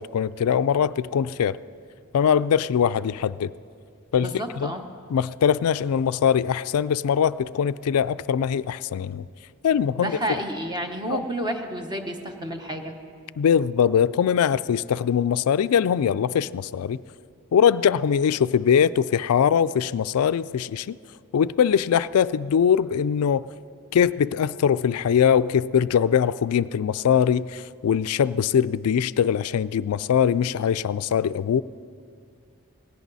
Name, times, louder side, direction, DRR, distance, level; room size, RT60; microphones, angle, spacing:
voice 1, 0.0-1.6 2.1-3.5 4.1-4.7 5.1-9.2 9.6-10.2 11.1-11.2 13.4-17.0 17.5-21.0 21.3-23.5 23.9-31.6, left 8 dB, 75° left, 16 dB, 0.3 m, -22 dB
voice 2, 4.2-4.8 10.0-13.0, right 1 dB, 20° right, 4 dB, 1.1 m, -30 dB
19.0 x 16.5 x 4.1 m, 2.2 s
head